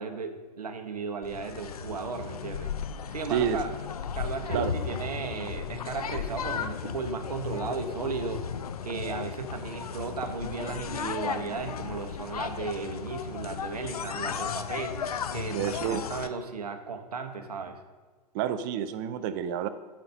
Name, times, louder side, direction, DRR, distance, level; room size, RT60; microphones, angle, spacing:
voice 1, 0.0-2.7 3.1-3.7 4.1-8.4 8.8-14.9 15.3-17.8, right 5 dB, 65° right, 7 dB, 1.0 m, -35 dB
sound 1, 1.2-16.3, left 7 dB, 60° left, 0.6 m, -35 dB
voice 2, 15.5-16.1 18.3-19.7, right 9 dB, 30° right, 11 dB, 0.5 m, -29 dB
11.0 x 4.3 x 5.2 m, 1.4 s
figure-of-eight pair, 105°, 21 cm